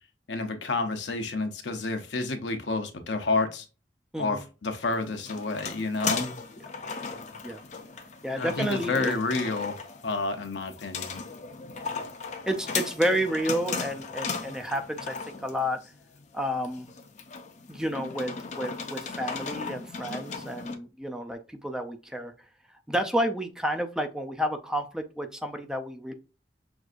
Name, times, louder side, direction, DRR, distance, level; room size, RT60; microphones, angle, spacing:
voice 1, 0.3-3.7 4.2-6.4 8.3-9.8 10.0-11.2, left 3 dB, 85° left, 0.8 m, -30 dB
sound 1, 4.9-20.8, left 5 dB, 45° left, 0.6 m, -37 dB
voice 2, 8.2-9.1 12.5-15.8 16.3-16.9 17.7-22.3 22.9-26.1, equal, 5° right, 0.4 m, -30 dB
6.1 x 2.6 x 2.5 m
head